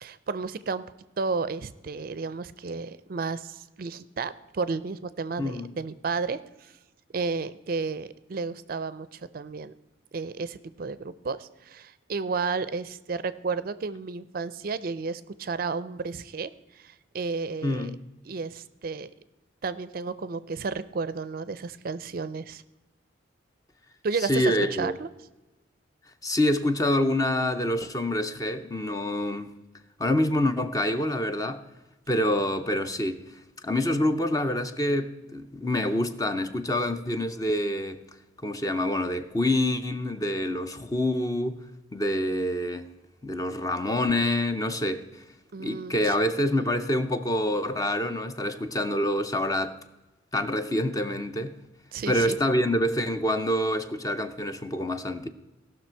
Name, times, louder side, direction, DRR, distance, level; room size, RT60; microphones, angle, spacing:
voice 1, 0.0-0.8 1.2-6.7 7.1-9.7 10.1-17.9 18.2-19.1 19.6-22.6 24.0-25.1 45.5-46.2 51.9-52.4, right 4 dB, 45° right, 0.4 m, -32 dB
voice 2, 5.4-5.7 17.6-18.0 24.3-25.0 26.2-29.5 30.0-31.6 32.1-33.3 33.6-38.0 38.4-41.6 41.9-42.9 43.2-45.2 45.6-49.8 50.3-51.6 52.1-55.3, left 1 dB, 20° left, 0.5 m, -26 dB
17.0 x 6.1 x 4.4 m
head